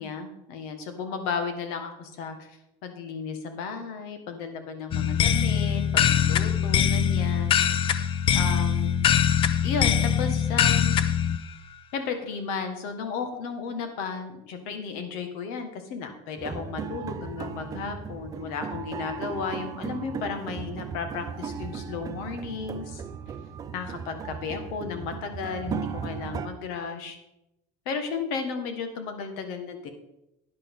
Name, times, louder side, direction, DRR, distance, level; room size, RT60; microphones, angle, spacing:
voice 1, 0.0-7.7 8.3-9.0 9.6-11.0 11.9-23.0 23.7-27.2 27.8-29.9, left 5 dB, 75° left, 7 dB, 1.7 m, -34 dB
sound 1, 4.9-11.4, left 8 dB, 35° left, 0.5 m, -22 dB
sound 2, 16.4-26.5, right 6 dB, 25° right, 0.5 m, -36 dB
11.0 x 9.7 x 3.8 m, 0.87 s
cardioid pair, 165°, 16 cm